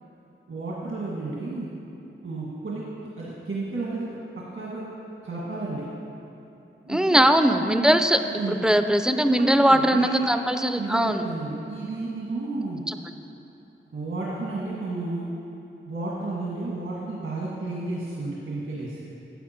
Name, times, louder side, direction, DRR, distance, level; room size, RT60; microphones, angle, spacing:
voice 1, 0.5-1.7 2.2-2.8 3.2-4.0 4.5-4.8 5.2-5.8 6.8-7.2 8.2-8.6 9.1-10.3 10.8-12.8 13.9-15.3 15.9-19.0, right 2 dB, 75° right, -6 dB, 1.6 m, -32 dB
voice 2, 6.9-8.2 8.6-11.2 12.9-13.0, right 1 dB, 5° right, 8 dB, 0.4 m, -20 dB
12.5 x 7.9 x 4.4 m, 2.8 s
wide cardioid pair, 100°, 21 cm